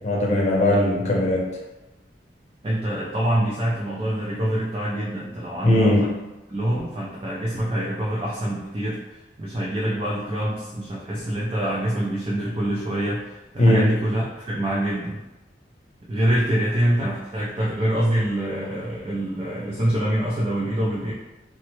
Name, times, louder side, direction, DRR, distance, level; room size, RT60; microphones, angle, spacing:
voice 1, 0.0-1.5 5.6-6.1 13.6-13.9, left 1 dB, 40° left, -3 dB, 0.6 m, -19 dB
voice 2, 2.6-6.1 6.5-15.2 16.1-21.1, right 1 dB, 30° right, -5 dB, 0.4 m, -25 dB
3.2 x 2.2 x 3.0 m, 1.0 s
head